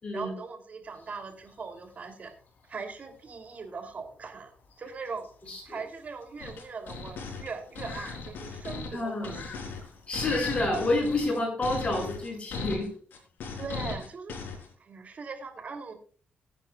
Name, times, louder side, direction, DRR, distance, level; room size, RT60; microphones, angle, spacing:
voice 1, 0.1-2.3 2.7-4.5 4.8-5.3 5.6-9.7 13.6-14.4 14.8-15.9, right 4 dB, 45° right, 4 dB, 3.0 m, -40 dB
sound 1, 0.8-10.6, left 5 dB, 65° left, 3.2 m, -47 dB
voice 2, 5.5-5.8 8.9-9.4 10.1-12.9, left 2 dB, 35° left, 0 dB, 7.4 m, -29 dB
sound 2, 6.4-14.7, left 4 dB, 90° left, 3.9 m, -37 dB
21.5 x 9.3 x 2.4 m, 0.41 s
cardioid pair, 110°, 3 cm